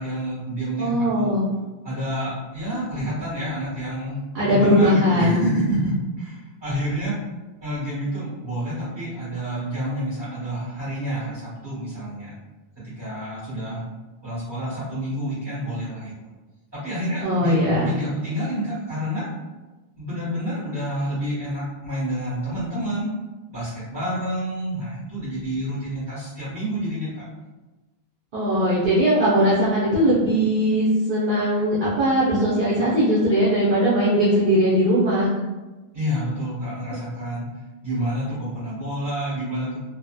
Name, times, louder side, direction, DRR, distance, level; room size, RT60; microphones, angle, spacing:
voice 1, 0.0-1.3 1.8-7.1 7.6-12.3 12.9-13.8 14.2-16.1 16.7-19.3 20.0-23.2 23.5-27.2 35.9-37.5 37.8-39.8, equal, 25° right, -10 dB, 1.4 m, -28 dB
voice 2, 0.8-1.5 4.3-5.4 17.2-17.9 28.3-35.3, equal, 60° right, -10 dB, 0.8 m, -19 dB
2.7 x 2.1 x 2.2 m, 1.2 s
omnidirectional pair, 1.0 m